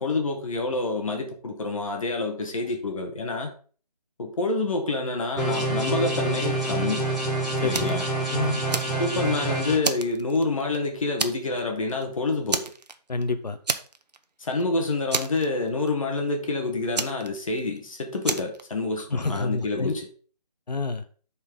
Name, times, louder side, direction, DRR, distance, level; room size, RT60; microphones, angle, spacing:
voice 1, 0.0-3.5 4.2-7.1 7.6-8.1 9.0-12.6 14.4-20.0, left 3 dB, 50° left, 1.5 m, -27 dB
sound 1, 5.4-9.7, right 2 dB, ahead, 0.4 m, -27 dB
voice 2, 7.6-8.0 8.3-8.6 13.1-13.6 19.0-19.9 20.7-21.0, left 3 dB, 75° left, 1.1 m, -28 dB
Fire, 7.7-8.0 8.4-9.4 9.8-10.8 11.2-11.6 11.9-12.0 12.5-13.2 13.7-14.2 14.5-14.6 15.1-15.9 16.9-17.8 18.2-18.6, right 4 dB, 75° right, 0.8 m, -29 dB
10.5 x 4.4 x 3.8 m
figure-of-eight pair, 155°, 21 cm